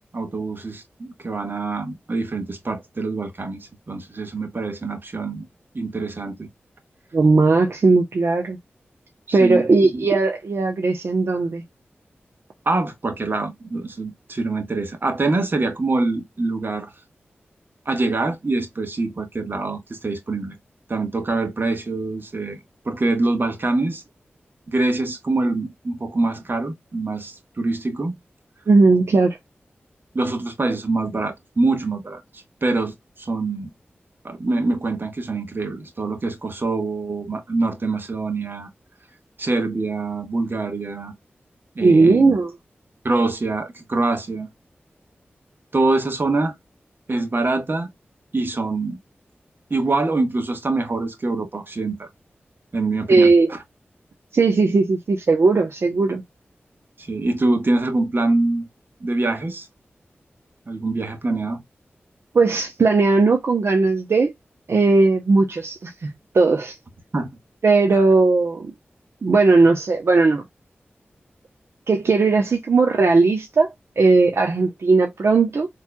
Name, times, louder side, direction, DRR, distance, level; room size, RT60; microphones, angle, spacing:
voice 1, 0.1-5.5 5.7-6.5 9.3-10.1 12.6-16.9 17.8-20.5 20.9-22.6 22.8-24.0 24.7-28.2 30.1-33.7 34.2-38.7 39.4-41.1 41.7-42.3 43.0-44.5 45.7-46.5 47.1-47.9 48.3-49.0 49.7-52.1 52.7-53.6 57.0-58.7 59.0-59.7 60.7-61.6 67.1-67.3 67.9-68.0, right 2 dB, 50° right, 1.5 m, -24 dB
voice 2, 7.1-8.6 9.3-11.6 28.7-29.4 41.8-42.5 53.1-53.5 54.3-56.2 62.3-64.3 64.7-66.8 67.6-68.7 69.2-70.4 71.9-73.7 74.0-75.7, right 3 dB, 70° right, 0.8 m, -17 dB
4.4 x 3.3 x 2.3 m
cardioid pair, 40°, 4 cm